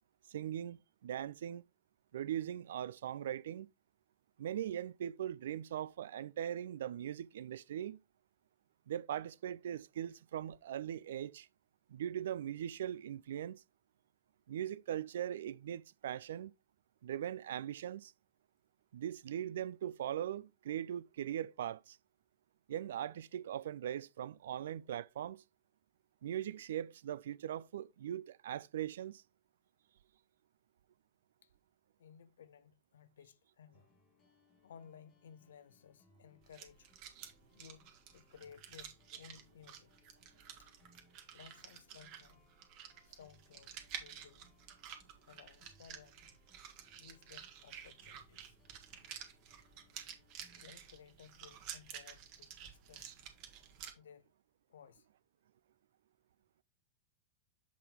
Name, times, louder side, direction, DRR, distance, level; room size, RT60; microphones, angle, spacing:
voice 1, 0.3-1.6 2.1-3.7 4.4-8.0 8.9-11.5 11.9-13.6 14.5-16.5 17.0-18.1 18.9-22.0 22.7-25.4 26.2-29.2, right 10 dB, 60° right, 0.3 m, -40 dB
voice 2, 32.0-33.9 34.6-36.9 37.5-39.9 40.6-40.7 41.3-42.5 43.0-44.5 45.2-46.3 46.9-48.6 50.5-53.1 53.9-54.3 54.7-55.1, left 7 dB, 65° left, 0.6 m, -58 dB
sound 1, 33.7-51.0, left 3 dB, 35° left, 1.5 m, -71 dB
sound 2, 36.4-53.9, right 9 dB, 40° right, 1.4 m, -51 dB
7.4 x 4.1 x 3.6 m
figure-of-eight pair, 90°, 0 cm